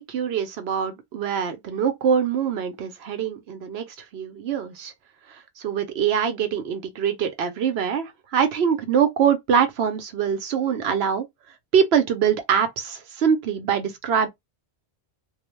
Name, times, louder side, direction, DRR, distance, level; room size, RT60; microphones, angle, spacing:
voice 1, 0.0-4.9 5.3-11.3 11.7-14.3, right 7 dB, 70° right, 0.8 m, -24 dB
2.3 x 2.1 x 3.0 m
omnidirectional pair, 1.1 m